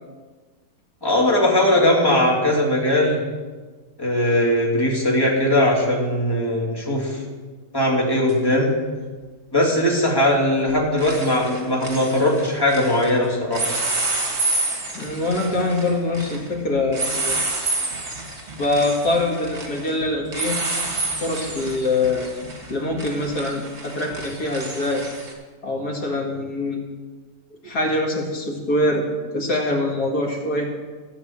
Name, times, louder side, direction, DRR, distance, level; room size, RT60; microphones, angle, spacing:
voice 1, 1.0-3.2 4.0-7.2 7.7-8.7 9.5-13.7, left 1 dB, 15° left, -3 dB, 2.7 m, -19 dB
sound 1, 8.3-8.4 10.1-10.4 10.7-13.1 13.5-25.3, right 2 dB, 45° right, 2.4 m, -29 dB
voice 2, 14.9-17.4 18.6-20.5 21.2-22.3 22.7-25.0 25.6-26.8 27.6-29.0 29.3-30.7, left 2 dB, 90° left, 0 dB, 2.5 m, -24 dB
13.5 x 8.1 x 7.3 m, 1.4 s
omnidirectional pair, 1.6 m